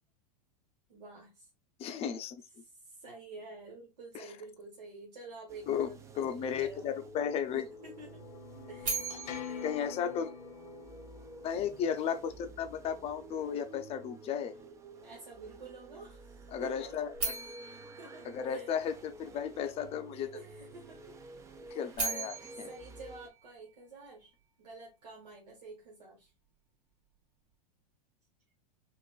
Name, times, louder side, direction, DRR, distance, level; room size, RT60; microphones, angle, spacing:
voice 1, 0.9-1.5 2.8-7.0 7.5-8.2 8.7-9.9 15.0-17.0 17.6-18.7 20.3-21.2 21.6-21.9 22.7-24.3 24.6-26.3, right 3 dB, 85° right, 1.4 m, -50 dB
voice 2, 1.8-2.4 4.1-4.3 5.7-7.6 9.6-10.3 11.4-14.5 16.5-17.3 18.2-20.3 21.7-22.7, left 8 dB, 30° left, 0.5 m, -34 dB
sound 1, 5.5-23.3, right 2 dB, 15° right, 0.4 m, -51 dB
sound 2, 7.0-13.0, left 8 dB, 75° left, 0.7 m, -47 dB
sound 3, 8.8-11.0 17.1-19.3 21.7-24.1, right 3 dB, 60° right, 1.8 m, -40 dB
4.3 x 2.5 x 2.3 m
hypercardioid pair, 120°, 21 cm